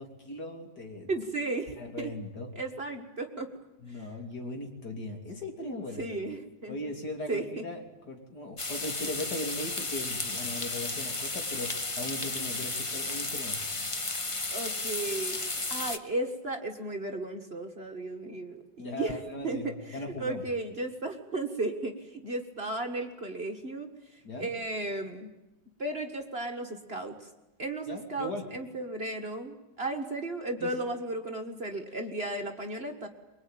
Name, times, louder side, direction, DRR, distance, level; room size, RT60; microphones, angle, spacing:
voice 1, 0.0-1.1 1.8-2.5 3.8-6.0 6.7-13.7 18.8-20.4 24.2-24.5 27.9-28.5 30.6-30.8, left 2 dB, 60° left, 2 dB, 3.5 m, -39 dB
voice 2, 1.1-2.1 2.6-3.5 3.9-4.1 6.0-6.8 7.3-7.7 14.5-15.4 15.7-23.9 24.4-25.3 25.8-27.1 27.6-33.1, right 2 dB, 35° right, 3 dB, 1.8 m, -35 dB
sound 1, 8.6-16.0, left 3 dB, 25° left, 0.8 m, -33 dB
24.5 x 22.5 x 9.1 m, 1.0 s
omnidirectional pair, 2.0 m